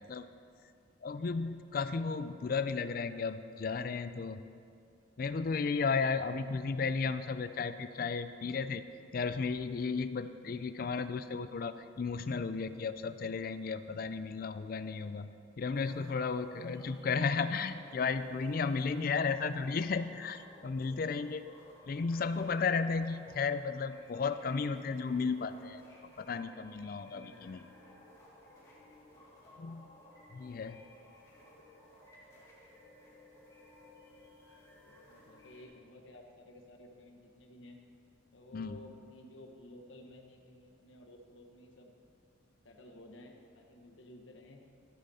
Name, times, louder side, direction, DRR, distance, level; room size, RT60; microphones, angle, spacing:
voice 1, 1.0-4.4 5.2-8.8 9.1-15.3 15.6-21.6 21.9-27.6 29.6-29.9 30.3-30.8 38.5-38.7, left 5 dB, 45° left, 12 dB, 0.3 m, -34 dB
sound 1, 15.7-35.6, left 1 dB, 15° left, 2.9 m, -58 dB
voice 2, 16.5-17.0 27.1-27.5 34.7-37.8 38.3-41.9 42.6-44.6, left 1 dB, 70° left, 3 dB, 1.1 m, -54 dB
13.0 x 8.9 x 4.2 m, 2.4 s
head